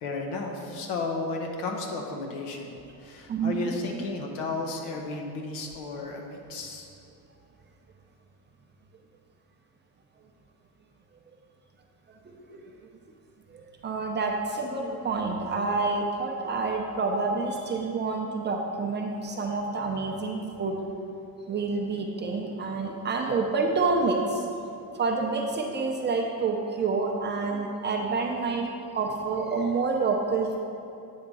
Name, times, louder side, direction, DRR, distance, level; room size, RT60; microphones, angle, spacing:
voice 1, 0.0-6.9, left 3 dB, 75° left, 2 dB, 1.1 m, -33 dB
voice 2, 3.3-3.7 12.5-12.7 13.5-20.8 21.5-24.4 25.0-28.7 28.9-30.6, right 4 dB, 25° right, 1 dB, 0.5 m, -28 dB
8.7 x 3.6 x 5.3 m, 2.8 s
cardioid pair, 145°, 42 cm